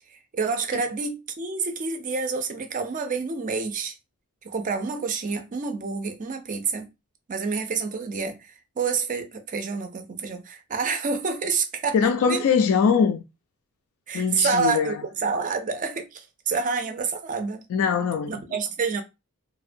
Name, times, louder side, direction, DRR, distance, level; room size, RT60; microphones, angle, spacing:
voice 1, 0.3-3.9 4.4-6.9 7.3-12.0 12.2-12.4 14.1-17.6 18.3-19.0, right 4 dB, 35° right, 0.4 m, -28 dB
voice 2, 11.9-13.2 14.1-15.0 17.7-18.3, left 6 dB, 65° left, 0.3 m, -22 dB
2.6 x 2.1 x 2.5 m
head